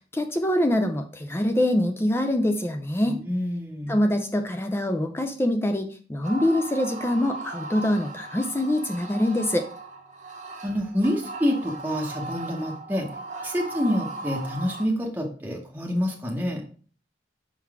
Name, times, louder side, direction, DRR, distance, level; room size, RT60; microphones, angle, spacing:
voice 1, 0.1-3.2 3.9-9.7, left 1 dB, 15° left, 6 dB, 0.4 m, -24 dB
voice 2, 3.0-3.9 10.6-13.1 13.4-16.6, equal, 10° right, -1 dB, 0.9 m, -27 dB
sound 1, 6.2-14.9, right 2 dB, 40° right, 0.9 m, -38 dB
5.8 x 3.8 x 4.7 m, 0.41 s
head